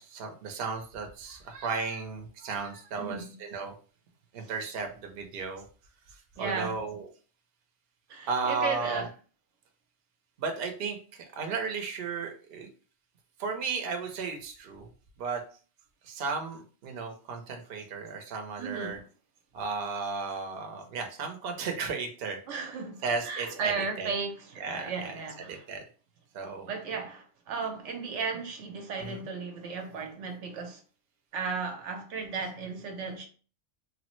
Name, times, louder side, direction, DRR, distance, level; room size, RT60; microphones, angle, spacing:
voice 1, 0.0-3.7 4.3-5.6 6.4-7.1 8.3-9.1 10.4-12.7 13.4-14.9 15.2-15.4 16.0-19.0 19.5-22.4 23.0-23.7 24.0-24.1 24.6-25.1 25.5-25.8 26.3-26.7 29.0-29.2, right 4 dB, 60° right, 0.8 m, -34 dB
voice 2, 3.0-3.3 4.4-4.5 6.4-6.7 8.1-9.1 18.6-19.0 22.5-25.7 26.7-30.8 31.3-33.3, right 5 dB, 85° right, 1.0 m, -35 dB
3.2 x 2.0 x 3.0 m
omnidirectional pair, 1.2 m